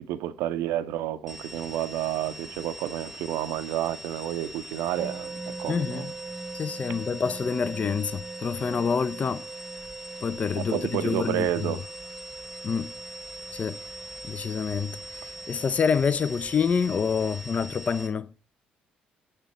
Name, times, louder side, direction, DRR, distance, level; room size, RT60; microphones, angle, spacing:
voice 1, 0.0-6.1 10.6-11.9, right 12 dB, 65° right, 0.6 m, -30 dB
sound 1, 1.3-18.1, equal, 5° left, 1.1 m, -42 dB
sound 2, 5.0-17.3, right 4 dB, 20° right, 0.6 m, -42 dB
voice 2, 5.7-6.1 6.5-9.4 10.2-11.7 12.6-12.9 13.5-13.8 14.2-18.3, left 6 dB, 35° left, 0.5 m, -27 dB
7.2 x 6.6 x 4.5 m
figure-of-eight pair, 45°, 4 cm